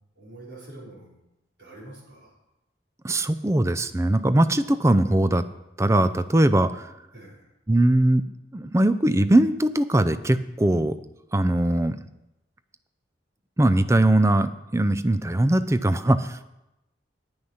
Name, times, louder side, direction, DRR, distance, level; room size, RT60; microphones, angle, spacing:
voice 1, 0.1-1.2 1.6-2.4 7.1-7.5, right 2 dB, 65° right, -6 dB, 4.7 m, -45 dB
voice 2, 3.0-5.4 5.8-6.9 7.7-8.2 8.5-10.9 11.3-12.0 13.6-16.4, right 1 dB, 15° right, 12 dB, 0.4 m, -21 dB
9.8 x 8.9 x 5.8 m, 0.92 s
head